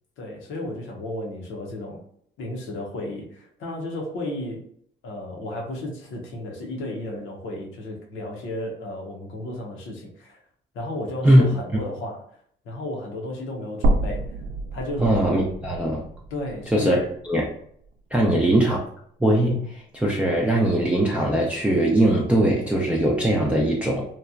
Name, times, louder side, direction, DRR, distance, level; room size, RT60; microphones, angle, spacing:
voice 1, 0.2-2.0 2.4-4.6 5.0-10.4 10.7-12.2 12.6-14.4 14.7-15.1 16.3-17.0 18.1-18.5, left 1 dB, 90° left, 0 dB, 0.8 m, -33 dB
sound 1, 13.8-18.0 18.4-18.5 19.9-20.0, right 1 dB, 70° right, 0.5 m, -28 dB
voice 2, 15.0-16.0 16.7-17.5 18.1-18.8 19.2-24.1, right 1 dB, 5° right, -4 dB, 0.5 m, -20 dB
2.9 x 2.2 x 2.4 m, 0.65 s
cardioid pair, 90°, 20 cm